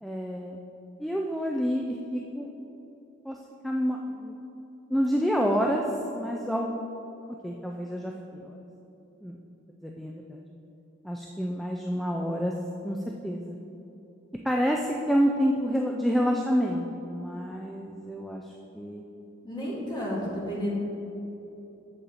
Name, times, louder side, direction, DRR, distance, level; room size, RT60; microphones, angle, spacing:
voice 1, 0.0-0.6 1.0-2.5 3.2-3.4 3.6-4.4 4.9-5.8 6.1-6.8 7.4-8.6 9.2-9.4 9.8-10.5 11.0-12.5 12.8-13.0 13.2-13.6 14.4-19.0, equal, ahead, 0 dB, 0.3 m, -28 dB
voice 2, 19.4-20.7, equal, 20° left, -5 dB, 1.9 m, -31 dB
8.5 x 7.2 x 4.1 m, 3.0 s
head